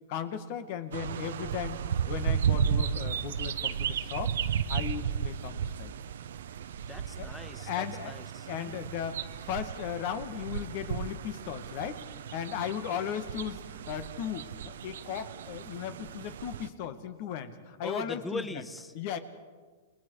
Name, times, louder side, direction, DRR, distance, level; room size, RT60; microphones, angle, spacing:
voice 1, 0.1-1.8 2.1-4.3 4.7-5.9 7.2-7.3 7.7-8.1 8.5-12.0 12.3-18.6 18.9-19.2, left 9 dB, 55° left, 10 dB, 2.0 m, -36 dB
sound 1, 0.9-16.7, right 8 dB, 75° right, 0.9 m, -34 dB
voice 2, 6.9-8.8 17.8-19.0, left 2 dB, 10° left, 12 dB, 1.3 m, -40 dB
29.5 x 21.0 x 4.9 m, 1.5 s
hypercardioid pair, 120°, 0 cm